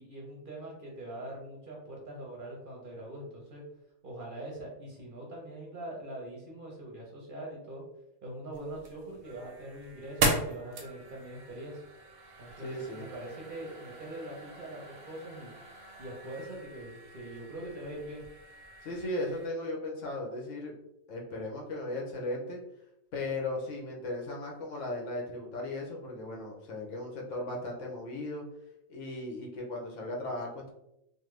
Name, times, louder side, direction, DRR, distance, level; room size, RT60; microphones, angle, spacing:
voice 1, 0.0-3.6 4.0-7.8 8.2-11.8 12.4-15.5 16.0-18.2, right 1 dB, 50° right, -2 dB, 0.7 m, -43 dB
sound 1, 8.5-19.5, right 2 dB, 90° right, 1.1 m, -38 dB
voice 2, 12.6-13.1 18.8-20.7 21.1-22.6 23.1-28.4 28.9-30.7, left 2 dB, 70° left, -1 dB, 1.1 m, -36 dB
3.3 x 2.1 x 3.1 m, 0.83 s
omnidirectional pair, 1.3 m